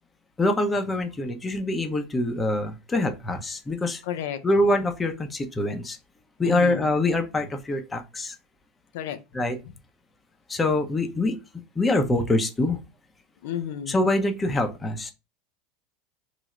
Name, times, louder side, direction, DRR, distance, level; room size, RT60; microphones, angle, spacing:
voice 1, 0.4-4.0 4.4-6.0 6.4-8.3 9.3-9.6 10.5-11.4 11.8-12.8 13.9-15.1, left 2 dB, 20° left, 0.6 m, -24 dB
voice 2, 4.0-4.4 6.4-6.9 8.9-9.2 13.4-14.0, left 9 dB, 75° left, 0.5 m, -31 dB
3.1 x 2.0 x 3.6 m
supercardioid pair, 115°, 0 cm